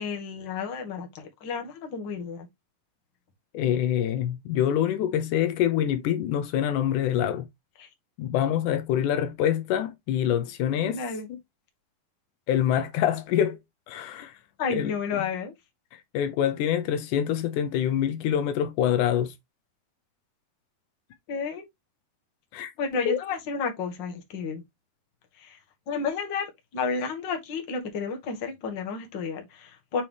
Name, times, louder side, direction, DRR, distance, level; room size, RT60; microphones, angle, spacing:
voice 1, 0.0-2.5 10.8-11.3 14.6-15.5 21.3-21.6 22.8-24.6 25.4-25.5 25.9-26.5 26.7-30.0, left 5 dB, 45° left, 1.8 m, -31 dB
voice 2, 3.5-7.5 8.2-11.0 11.3-11.4 12.5-13.6 13.9-14.3 14.6-15.2 16.1-19.3 22.5-22.7 23.1-23.2, left 10 dB, 80° left, 2.2 m, -25 dB
7.4 x 4.1 x 3.1 m
omnidirectional pair, 3.6 m